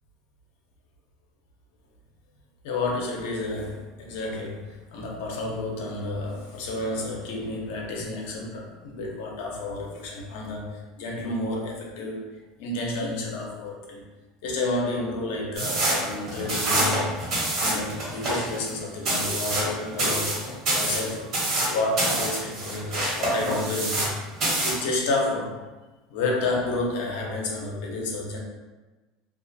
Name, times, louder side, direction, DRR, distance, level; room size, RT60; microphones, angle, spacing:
voice 1, 2.6-12.2 12.6-14.0 14.4-17.2 17.6-20.4 20.7-21.3 21.7-24.2 24.6-25.6 26.1-28.4, left 2 dB, 75° left, -1 dB, 0.6 m, -30 dB
sound 1, 15.5-24.1 24.4-24.8, right 1 dB, 50° right, 1.1 m, -26 dB
2.4 x 2.3 x 2.7 m, 1.2 s
supercardioid pair, 125°, 0 cm